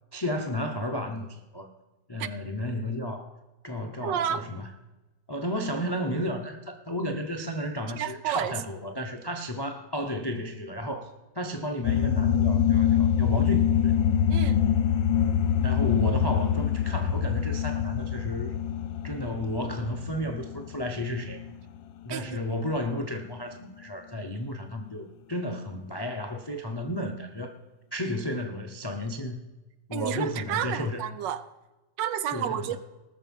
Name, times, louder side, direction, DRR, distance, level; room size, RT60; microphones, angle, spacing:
voice 1, 0.1-1.7 2.1-3.4 3.6-4.7 5.3-13.9 15.6-18.5 19.0-21.4 22.0-27.6 27.9-29.4 29.9-31.0 32.3-32.8, left 1 dB, 40° left, 0.3 m, -33 dB
voice 2, 4.0-4.5 7.9-8.5 14.3-14.6 22.1-22.4 29.9-31.4 32.0-32.8, right 10 dB, 75° right, 1.3 m, -31 dB
sound 1, 11.8-21.8, left 8 dB, 75° left, 1.4 m, -25 dB
19.0 x 6.7 x 5.4 m
omnidirectional pair, 2.0 m